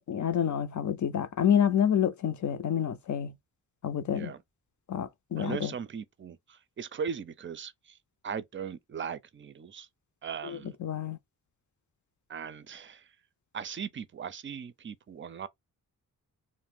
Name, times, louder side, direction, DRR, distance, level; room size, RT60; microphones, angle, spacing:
voice 1, 0.0-3.3 3.8-4.3 4.9-5.7 10.8-11.2, left 9 dB, 50° left, 0.6 m, -28 dB
voice 2, 4.1-4.4 5.4-8.0 8.2-9.9 10.2-10.8 12.3-13.2 13.5-15.5, right 7 dB, 35° right, 0.5 m, -39 dB
2.5 x 2.1 x 3.6 m
cardioid pair, 55°, 37 cm